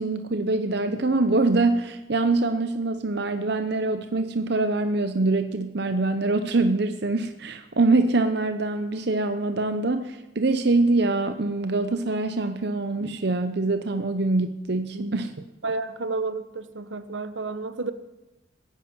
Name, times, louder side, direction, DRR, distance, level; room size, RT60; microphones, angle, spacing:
voice 1, 0.0-15.3, right 3 dB, 60° right, 8 dB, 0.8 m, -24 dB
voice 2, 15.6-17.9, right 3 dB, 80° right, 11 dB, 1.1 m, -31 dB
15.5 x 9.9 x 8.8 m, 1.0 s
head